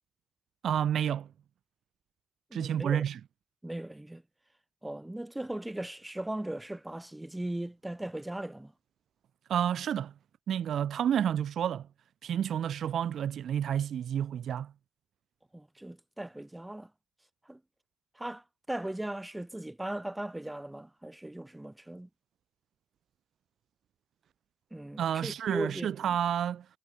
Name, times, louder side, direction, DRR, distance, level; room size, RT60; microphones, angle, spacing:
voice 1, 0.6-1.3 2.5-3.2 9.5-10.1 10.5-11.9 12.2-14.7 25.0-26.7, right 9 dB, 75° right, 1.2 m, -30 dB
voice 2, 2.5-3.0 3.6-4.2 4.8-8.7 15.5-16.9 17.5-17.6 18.1-22.1 24.7-25.9, right 1 dB, 15° right, 2.5 m, -38 dB
supercardioid pair, 45°, 0 cm